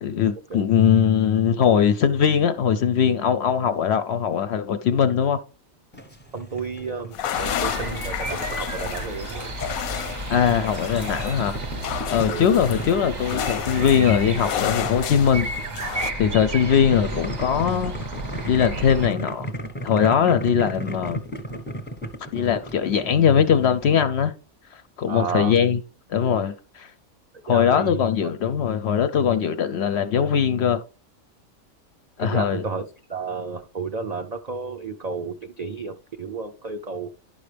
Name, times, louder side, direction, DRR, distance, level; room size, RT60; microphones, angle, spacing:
voice 1, 0.0-5.4 10.3-11.6 12.1-15.5 16.2-17.9 18.5-19.5 19.8-21.2 22.3-24.3 24.7-25.8 26.1-26.9 27.4-30.8 32.2-32.6, left 8 dB, 65° left, 0.7 m, -21 dB
Boiling, 5.9-24.0, equal, 10° left, 0.7 m, -37 dB
voice 2, 6.3-9.5 12.3-12.5 25.1-25.6 27.5-28.3 32.2-37.1, right 4 dB, 65° right, 0.4 m, -32 dB
sound 1, 7.1-16.1, left 10 dB, 90° left, 1.0 m, -31 dB
sound 2, 7.3-19.1, right 2 dB, 40° right, 0.8 m, -33 dB
10.5 x 5.5 x 3.3 m
omnidirectional pair, 1.5 m